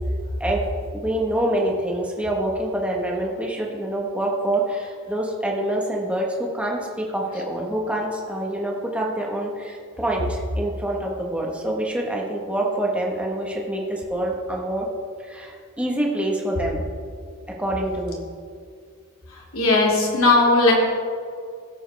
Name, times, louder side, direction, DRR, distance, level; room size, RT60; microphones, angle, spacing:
voice 1, 0.9-14.9 15.2-16.8 17.6-18.3, right 1 dB, 5° right, -1 dB, 1.3 m, -26 dB
voice 2, 19.5-20.7, left 2 dB, 70° left, -2 dB, 2.6 m, -17 dB
17.0 x 7.6 x 3.4 m, 2.2 s
head